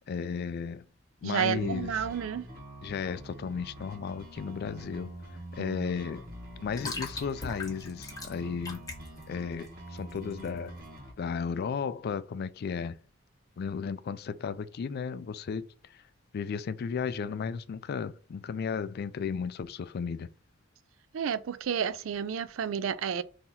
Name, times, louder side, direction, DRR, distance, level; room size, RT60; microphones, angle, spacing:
voice 1, 0.1-0.9 1.2-1.9 2.8-5.1 5.5-6.2 6.6-8.8 9.3-10.8 11.2-13.0 13.6-16.0 16.3-20.3, left 6 dB, 50° left, 0.3 m, -34 dB
voice 2, 1.2-2.5 5.6-5.9 21.1-23.2, right 7 dB, 85° right, 0.4 m, -31 dB
sound 1, 1.5-11.1, right 1 dB, 50° right, 1.3 m, -46 dB
sound 2, 4.2-10.9, left 3 dB, 20° left, 1.2 m, -43 dB
3.8 x 2.9 x 4.1 m
head